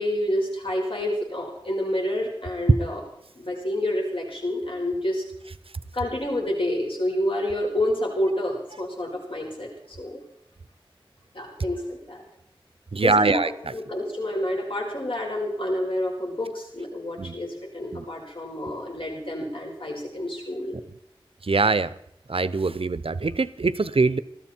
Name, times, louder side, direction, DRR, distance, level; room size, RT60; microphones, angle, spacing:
voice 1, 0.0-3.0 3.4-5.2 5.9-9.7 10.0-10.2 11.3-12.2 13.0-20.8, left 1 dB, 70° left, 0 dB, 5.2 m, -28 dB
voice 2, 12.9-13.7 17.2-17.4 17.9-18.1 21.4-21.9 22.3-24.2, right 3 dB, 80° right, 15 dB, 0.7 m, -23 dB
20.5 x 13.5 x 4.5 m, 0.75 s
wide cardioid pair, 50°, 9 cm